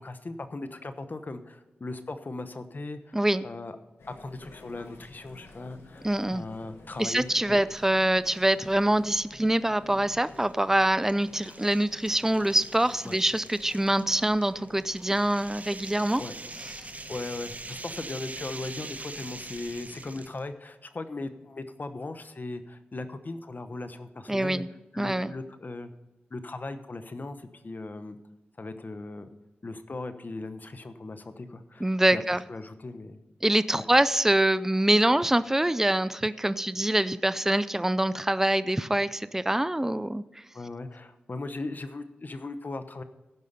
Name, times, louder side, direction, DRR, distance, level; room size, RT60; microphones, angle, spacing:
voice 1, 0.0-3.2 3.4-3.8 4.2-7.6 13.0-13.2 16.2-16.3 17.1-24.6 24.9-25.9 26.3-28.2 28.6-29.3 29.6-33.2 33.7-33.8 40.5-43.0, left 2 dB, 50° left, 10 dB, 0.9 m, -38 dB
voice 2, 3.1-3.5 6.0-6.4 7.0-16.2 24.3-24.7 25.0-25.3 31.8-32.4 33.4-40.2, right 1 dB, 10° right, 15 dB, 0.4 m, -25 dB
sound 1, 4.0-20.2, left 2 dB, 90° left, 1.3 m, -51 dB
sound 2, 8.3-8.8 9.2-9.3 10.3-20.4, right 3 dB, 40° right, 0.7 m, -43 dB
15.0 x 5.6 x 5.4 m, 1.0 s
cardioid pair, 45°, 4 cm